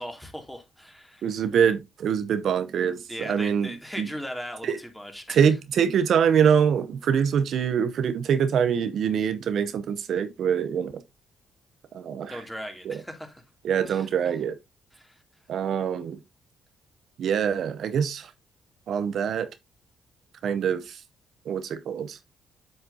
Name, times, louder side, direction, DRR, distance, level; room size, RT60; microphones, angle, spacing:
voice 1, 0.0-1.4 3.1-5.5 12.3-13.4 13.9-14.1 14.9-15.2, equal, 5° left, 2.6 m, -38 dB
voice 2, 1.2-4.1 4.6-4.8 5.3-11.0 11.9-12.4 12.9-13.0 13.6-14.5 15.5-16.2 17.2-18.3 18.9-19.5 20.4-21.0 21.5-22.2, right 7 dB, 70° right, 0.7 m, -24 dB
7.9 x 6.5 x 2.7 m
supercardioid pair, 60°, 0 cm